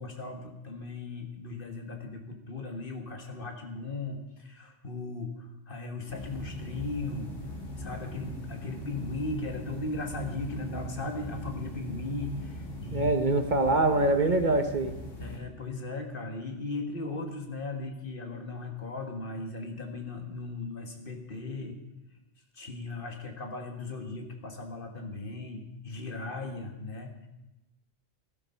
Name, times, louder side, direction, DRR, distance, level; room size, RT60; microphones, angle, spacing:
voice 1, 0.0-7.3 7.8-13.1 15.2-21.8 22.5-27.3, left 3 dB, 45° left, 4 dB, 1.9 m, -37 dB
sound 1, 6.1-15.4, equal, 80° left, 2.9 m, -40 dB
voice 2, 12.9-15.0, right 2 dB, 40° right, 7 dB, 1.0 m, -24 dB
14.5 x 12.5 x 5.6 m, 0.96 s
omnidirectional pair, 1.3 m